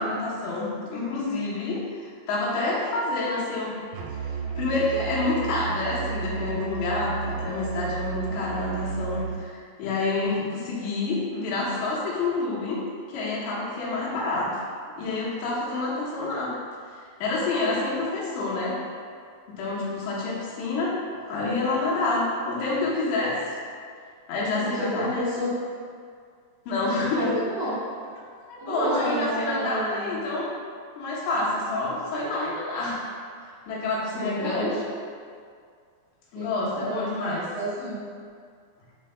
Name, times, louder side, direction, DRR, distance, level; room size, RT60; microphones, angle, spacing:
voice 1, 0.0-1.8 2.3-3.7 4.1-12.8 13.1-14.5 15.0-16.5 17.2-18.8 19.5-21.0 21.3-23.4 24.3-25.2 26.7-27.3 28.5-30.5 31.0-33.0 33.7-34.7 36.3-37.5, left 2 dB, 85° left, -6 dB, 3.3 m, -28 dB
Musical instrument, 3.9-9.4, right 6 dB, 90° right, 2.1 m, -32 dB
voice 2, 24.6-25.5 27.1-27.8 28.6-30.1 34.1-34.8 36.3-38.0, right 1 dB, 75° right, -13 dB, 1.1 m, -31 dB
9.0 x 4.7 x 2.3 m, 2.1 s
omnidirectional pair, 4.8 m